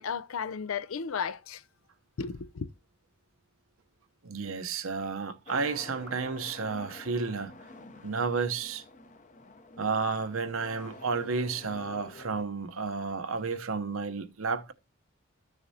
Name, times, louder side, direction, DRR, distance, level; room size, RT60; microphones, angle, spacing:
voice 1, 0.0-1.6 2.2-2.7, left 6 dB, 85° left, 0.5 m, -34 dB
voice 2, 4.2-7.5 8.0-8.8 9.8-14.7, right 4 dB, 80° right, 0.8 m, -32 dB
sound 1, 5.5-12.4, left 2 dB, 35° left, 0.7 m, -49 dB
14.0 x 6.6 x 2.8 m
head